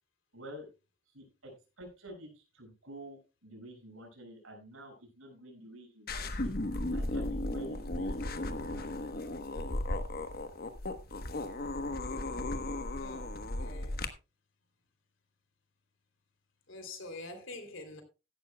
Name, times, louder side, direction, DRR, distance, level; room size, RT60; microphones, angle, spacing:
voice 1, 0.3-0.7 1.1-6.5 6.9-8.9, right 1 dB, 80° right, 6.5 m, -49 dB
sound 1, 6.1-14.1, left 2 dB, 45° left, 1.2 m, -35 dB
voice 2, 12.9-14.0 16.7-18.0, left 2 dB, 70° left, 3.2 m, -46 dB
15.5 x 11.5 x 2.3 m
head